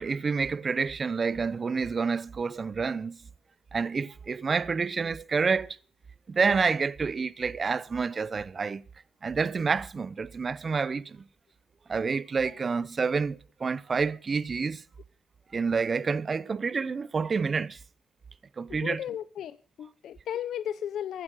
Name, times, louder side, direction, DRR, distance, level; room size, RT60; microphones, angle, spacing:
voice 1, 0.0-3.2 3.7-5.8 6.3-8.8 9.2-11.2 11.9-14.8 15.5-17.8 18.6-19.0, right 5 dB, 35° right, 0.7 m, -28 dB
voice 2, 18.8-21.2, left 10 dB, 70° left, 0.6 m, -35 dB
15.0 x 9.6 x 6.3 m
cardioid pair, 90°, 0 cm